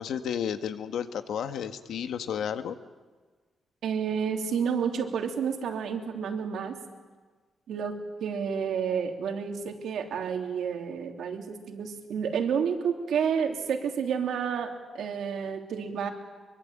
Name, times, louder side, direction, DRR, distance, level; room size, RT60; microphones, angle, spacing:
voice 1, 0.0-2.7, left 8 dB, 80° left, 8 dB, 1.6 m, -32 dB
voice 2, 3.8-6.7 7.7-7.9 8.2-16.1, right 7 dB, 75° right, 3 dB, 3.2 m, -30 dB
24.5 x 23.5 x 8.9 m, 1.4 s
wide cardioid pair, 175°, 0 cm